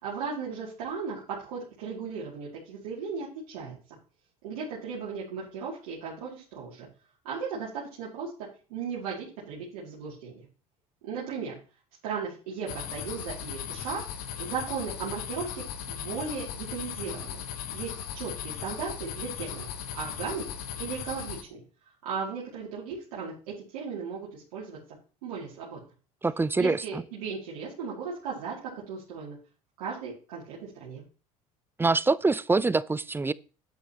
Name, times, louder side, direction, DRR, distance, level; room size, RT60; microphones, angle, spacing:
voice 1, 0.0-3.8 4.4-6.9 7.2-8.3 8.7-10.5 11.0-11.6 12.0-17.4 17.7-19.7 19.9-20.4 20.8-21.6 22.0-24.8 25.2-25.8 26.6-29.4 29.8-31.0, right 5 dB, 75° right, 2.4 m, -36 dB
sound 1, 12.7-21.4, left 9 dB, 75° left, 1.1 m, -37 dB
voice 2, 26.2-26.8 31.8-33.3, right 3 dB, 10° right, 0.4 m, -24 dB
9.3 x 8.3 x 2.9 m
hypercardioid pair, 70°, 19 cm